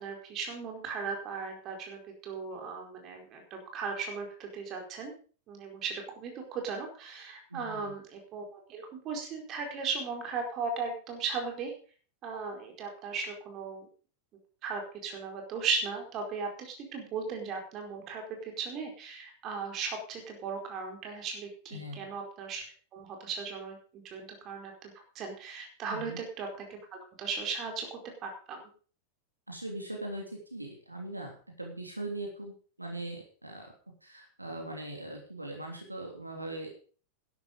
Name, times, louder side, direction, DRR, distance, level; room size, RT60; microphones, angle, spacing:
voice 1, 0.0-5.1 5.5-11.7 12.2-13.9 14.6-22.6 22.9-28.6, right 5 dB, 35° right, 3 dB, 4.7 m, -37 dB
voice 2, 7.5-7.9 21.7-22.1 25.9-26.2 29.5-32.5 32.8-33.7 34.0-36.7, right 1 dB, 85° right, 2 dB, 3.2 m, -40 dB
12.0 x 11.5 x 5.3 m, 0.41 s
figure-of-eight pair, 90°, 0 cm